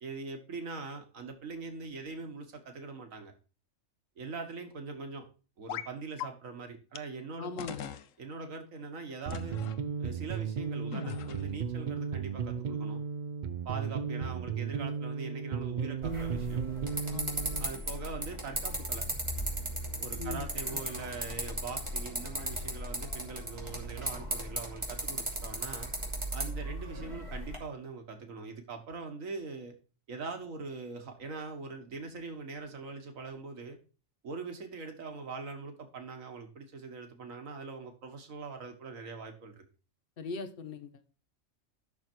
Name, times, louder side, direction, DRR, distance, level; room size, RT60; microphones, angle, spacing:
voice 1, 0.0-3.3 4.2-5.2 5.6-7.8 8.2-9.6 10.0-13.0 13.7-16.6 17.6-19.1 20.0-25.9 26.3-29.7 30.1-33.8 34.2-39.6, right 4 dB, 90° right, 5 dB, 1.8 m, -42 dB
sound 1, 5.7-5.9 6.2-6.3 6.9-7.0 7.6-8.1 9.3-9.8 10.9-11.6, left 10 dB, 80° left, 1.1 m, -40 dB
voice 2, 7.4-7.9 17.1-17.4 20.2-20.8 40.2-40.9, left 4 dB, 50° left, 9 dB, 1.2 m, -40 dB
sound 2, 9.3-17.7, right 6 dB, 50° right, 0.6 m, -35 dB
sound 3, 16.0-27.6, right 1 dB, 20° right, 2.9 m, -37 dB
12.5 x 6.4 x 4.5 m, 0.36 s
omnidirectional pair, 1.3 m